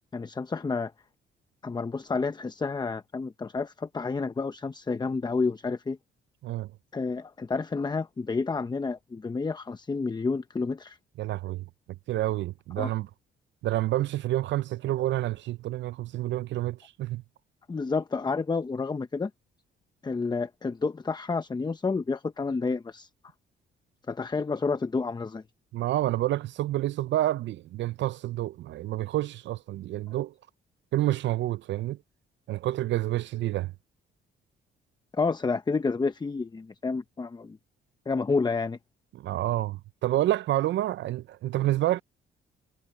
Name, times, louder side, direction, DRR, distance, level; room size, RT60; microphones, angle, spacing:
voice 1, 0.1-0.9 1.6-6.0 6.9-11.0 12.8-12.9 17.7-19.3 20.0-23.1 24.1-25.4 35.1-37.6 38.1-38.8, left 4 dB, 20° left, 0.8 m, -30 dB
voice 2, 11.2-11.6 12.1-13.1 13.6-17.2 25.7-30.3 30.9-32.0 32.5-33.7 39.1-42.0, right 14 dB, 65° right, 0.4 m, -28 dB
cardioid pair, 90°, 20 cm